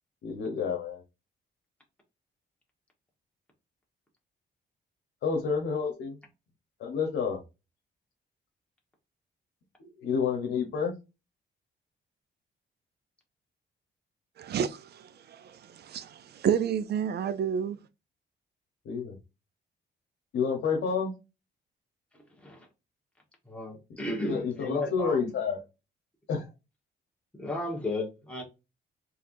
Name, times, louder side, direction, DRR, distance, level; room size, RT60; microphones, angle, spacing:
voice 1, 0.2-1.0 5.2-6.2 6.8-7.4 9.8-10.9 18.8-19.2 20.3-21.1 24.3-25.6 26.3-26.5, left 6 dB, 80° left, 1.1 m, -29 dB
voice 2, 14.4-17.8, right 8 dB, 55° right, 0.5 m, -30 dB
voice 3, 23.5-25.3 27.3-28.4, left 2 dB, 5° left, 1.5 m, -34 dB
4.4 x 3.3 x 2.6 m
cardioid pair, 135°, 20 cm